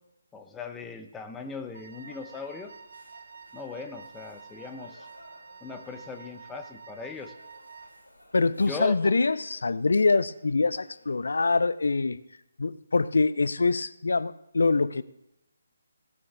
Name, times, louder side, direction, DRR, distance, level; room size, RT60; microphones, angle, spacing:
voice 1, 0.3-2.7 3.5-5.1 5.6-7.3 8.7-9.1, left 4 dB, 10° left, 5 dB, 0.7 m, -39 dB
Wind instrument woodwind instrument, 1.7-8.1, right 5 dB, 50° right, 0.7 m, -49 dB
sound 1, 1.9-11.9, left 1 dB, 85° left, 2.5 m, -57 dB
voice 2, 8.3-12.2 12.6-15.0, left 3 dB, 60° left, 17 dB, 0.4 m, -24 dB
17.5 x 12.5 x 2.4 m, 0.87 s
figure-of-eight pair, 145°, 0 cm